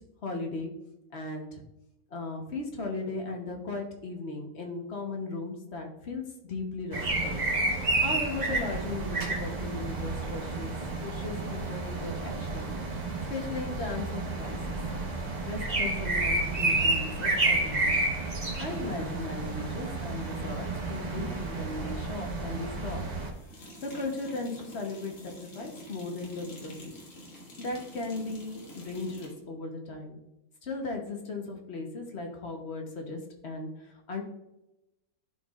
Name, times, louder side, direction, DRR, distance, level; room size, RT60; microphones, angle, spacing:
voice 1, 0.2-0.7 1.1-1.6 2.1-7.4 7.8-10.8 11.0-12.7 13.3-14.8 15.4-17.9 18.6-23.0 23.8-26.9 27.6-30.2 30.6-34.2, left 3 dB, 45° left, 2 dB, 1.3 m, -37 dB
sound 1, 6.9-23.3, right 2 dB, 30° right, 1.1 m, -30 dB
sound 2, 23.3-29.4, equal, 80° left, 2.2 m, -48 dB
12.0 x 4.6 x 2.5 m, 0.92 s
omnidirectional pair, 1.6 m